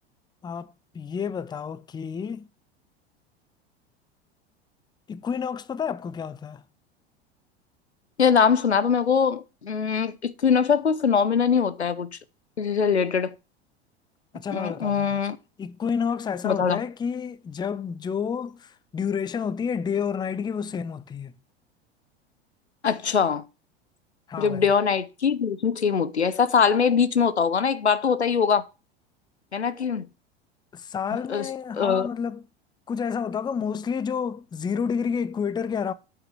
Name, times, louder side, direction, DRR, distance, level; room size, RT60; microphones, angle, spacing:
voice 1, 0.4-2.5 5.1-6.6 14.3-15.2 15.6-21.3 24.3-24.7 30.7-32.4 32.9-35.9, left 6 dB, 15° left, 0.6 m, -30 dB
voice 2, 8.2-12.1 12.6-13.3 14.5-15.4 16.4-16.8 22.8-23.4 24.4-28.6 29.5-30.1 31.3-31.5 31.8-32.1, left 6 dB, 85° left, 0.8 m, -22 dB
8.9 x 5.9 x 6.5 m
figure-of-eight pair, 80°, 32 cm